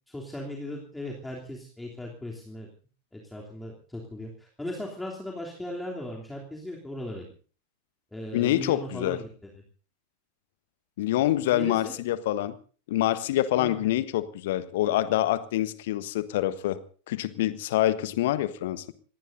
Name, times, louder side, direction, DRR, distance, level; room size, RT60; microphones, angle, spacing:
voice 1, 0.1-2.7 3.1-7.3 8.1-9.3 11.5-11.9 13.5-13.8, left 1 dB, 5° left, -2 dB, 3.2 m, -37 dB
voice 2, 8.3-9.2 11.0-12.6 12.9-16.8 17.1-18.9, left 14 dB, 55° left, 14 dB, 1.3 m, -26 dB
26.5 x 19.0 x 2.7 m, 0.39 s
figure-of-eight pair, 90°, 0 cm